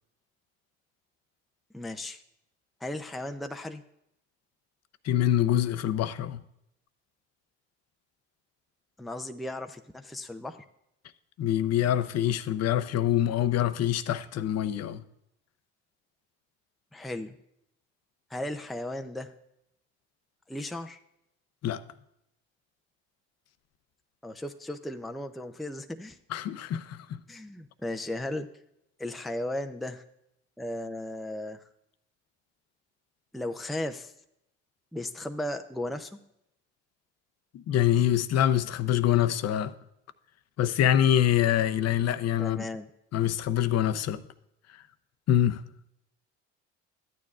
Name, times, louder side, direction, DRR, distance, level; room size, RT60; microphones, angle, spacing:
voice 1, 1.7-2.2 2.8-3.8 9.0-10.6 16.9-17.4 18.3-19.3 20.5-21.0 24.2-26.2 27.3-28.5 29.0-30.0 30.6-31.6 33.3-34.1 34.9-36.2 42.4-42.9, left 1 dB, ahead, 0.5 m, -35 dB
voice 2, 5.0-6.4 11.4-15.0 21.6-21.8 26.3-27.2 37.5-39.7 40.6-42.6 43.1-44.2 45.3-45.6, left 11 dB, 55° left, 0.7 m, -25 dB
13.5 x 9.4 x 2.4 m
hypercardioid pair, 65°, 31 cm